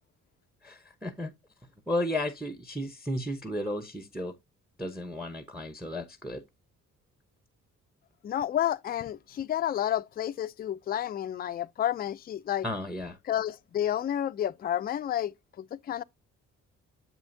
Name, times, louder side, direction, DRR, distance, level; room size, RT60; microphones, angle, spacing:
voice 1, 0.6-1.3 1.9-4.3 4.8-6.4 12.6-13.2, left 1 dB, ahead, 0.8 m, -33 dB
voice 2, 8.2-12.7 13.2-16.0, left 11 dB, 30° left, 0.4 m, -30 dB
7.4 x 5.5 x 2.6 m
cardioid pair, 90°, 30 cm